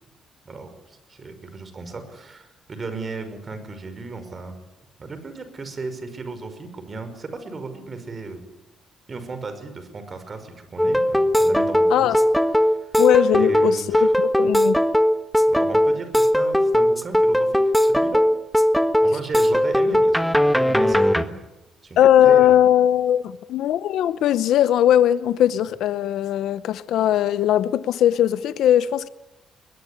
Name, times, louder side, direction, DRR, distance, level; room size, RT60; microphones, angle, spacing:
voice 1, 0.5-4.6 5.0-8.4 9.1-12.2 12.6-13.0 13.3-14.1 15.5-18.2 19.0-21.5 21.8-22.6, right 3 dB, 35° right, 5.5 m, -35 dB
sound 1, 10.8-21.2, equal, ahead, 1.5 m, -18 dB
voice 2, 13.0-14.8 22.0-29.1, left 11 dB, 80° left, 0.8 m, -19 dB
21.5 x 20.5 x 10.0 m
cardioid pair, 90°, 0 cm